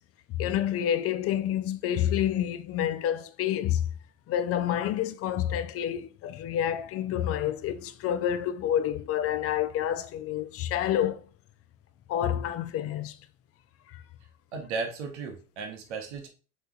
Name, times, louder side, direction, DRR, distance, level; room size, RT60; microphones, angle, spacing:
voice 1, 0.3-3.8 4.3-11.2 12.1-13.1, left 10 dB, 45° left, 0.4 m, -28 dB
voice 2, 14.5-16.3, right 4 dB, 85° right, 0.7 m, -35 dB
3.5 x 2.9 x 2.3 m
hypercardioid pair, 65°, 34 cm